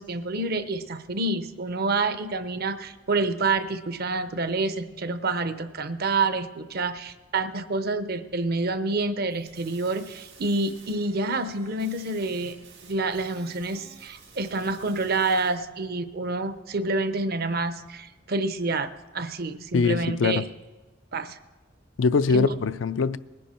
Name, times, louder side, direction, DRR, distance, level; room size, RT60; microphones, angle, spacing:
voice 1, 0.0-12.6 12.8-20.4 21.1-21.4 22.3-22.5, right 3 dB, 55° right, 0.7 m, -28 dB
sound 1, 9.3-15.5, right 5 dB, 90° right, 4.4 m, -51 dB
voice 2, 19.7-20.4 22.0-23.2, left 4 dB, 75° left, 0.4 m, -22 dB
20.0 x 11.0 x 4.4 m
head